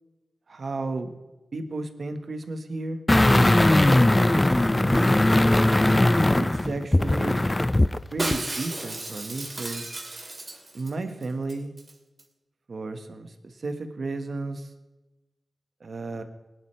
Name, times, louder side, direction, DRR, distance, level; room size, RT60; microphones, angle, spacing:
voice 1, 0.5-1.1 1.5-3.0 3.2-3.6 4.6-5.3 6.3-7.5 8.1-9.9 10.7-11.7 12.7-14.7 15.8-16.2, right 3 dB, 65° right, 7 dB, 1.5 m, -33 dB
sound 1, 3.1-8.0 8.3-8.4, left 1 dB, 20° left, 0.4 m, -19 dB
Shatter, 8.2-10.9 11.2-11.3 11.5-11.9 12.2-12.3, right 2 dB, 35° right, 2.4 m, -33 dB
19.5 x 11.0 x 3.3 m, 1.1 s
cardioid pair, 60°, 0 cm